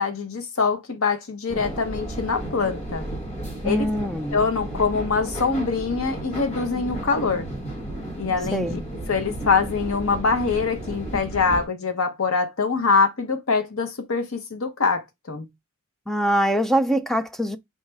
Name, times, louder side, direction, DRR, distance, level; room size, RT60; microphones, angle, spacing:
voice 1, 0.0-3.0 3.6-3.9 4.3-7.5 8.2-8.8 9.1-15.5, left 4 dB, 80° left, 0.9 m, -24 dB
sound 1, 1.5-11.7, right 1 dB, 35° left, 2.0 m, -33 dB
voice 2, 3.6-4.4 8.5-8.8 16.1-17.6, right 1 dB, ahead, 0.3 m, -23 dB
4.3 x 3.2 x 3.3 m
head